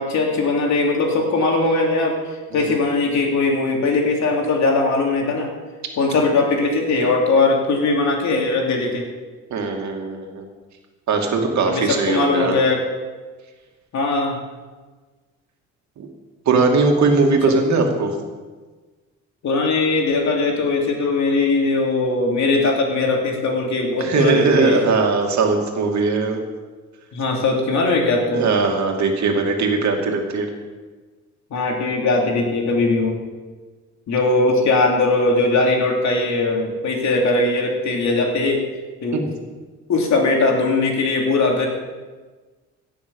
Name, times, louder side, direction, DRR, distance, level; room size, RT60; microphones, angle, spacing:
voice 1, 0.0-2.2 2.5-5.5 6.0-9.1 11.6-12.8 13.9-14.4 17.5-17.6 19.4-24.8 27.1-28.5 31.5-33.2 34.1-38.6 39.0-39.2 39.9-41.7, left 3 dB, 65° left, 0 dB, 3.2 m, -20 dB
voice 2, 9.5-10.5 11.1-12.6 16.0-16.1 16.5-18.1 24.0-26.4 28.3-30.5 39.1-39.2, right 4 dB, 65° right, 2 dB, 2.6 m, -19 dB
16.5 x 7.0 x 7.2 m, 1.3 s
cardioid pair, 90°, 30 cm